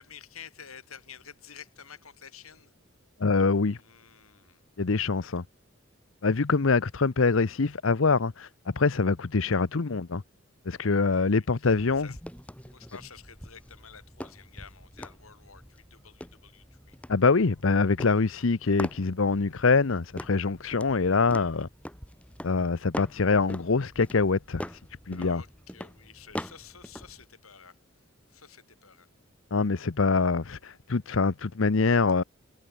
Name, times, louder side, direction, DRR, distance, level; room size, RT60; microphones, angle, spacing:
voice 1, 0.0-2.7 3.7-4.6 10.7-12.2 12.7-17.0 25.1-27.8 28.3-29.1, left 7 dB, 80° left, 4.4 m, -50 dB
voice 2, 3.2-3.8 4.8-5.4 6.2-10.2 10.7-12.1 17.1-21.7 22.4-24.8 25.1-25.4 29.5-32.2, left 4 dB, 65° left, 0.8 m, -24 dB
sound 1, 11.6-27.2, equal, 5° left, 3.8 m, -43 dB
head